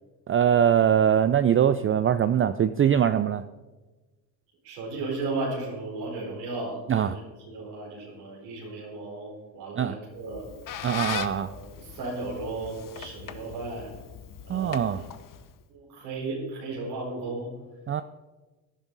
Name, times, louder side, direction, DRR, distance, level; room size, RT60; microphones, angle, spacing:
voice 1, 0.3-3.4 6.9-7.2 9.8-9.9 10.8-11.5 14.5-15.0 17.9-18.0, right 9 dB, 30° right, 12 dB, 0.4 m, -22 dB
voice 2, 4.6-10.5 11.4-13.9 14.4-15.1 15.7-17.5, right 3 dB, 85° right, -4 dB, 4.4 m, -35 dB
Squeak, 10.2-15.6, left 9 dB, 40° left, 1.0 m, -39 dB
17.0 x 10.5 x 4.0 m, 1.2 s
supercardioid pair, 65°, 48 cm